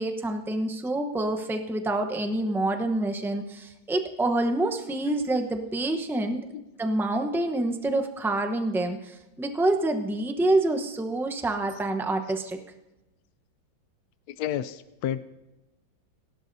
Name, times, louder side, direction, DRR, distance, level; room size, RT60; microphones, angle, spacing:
voice 1, 0.0-6.5 6.8-12.6, right 2 dB, 5° right, 5 dB, 0.4 m, -27 dB
voice 2, 14.4-15.2, left 10 dB, 70° left, 12 dB, 0.9 m, -30 dB
30.0 x 12.0 x 2.7 m, 1.0 s
omnidirectional pair, 2.1 m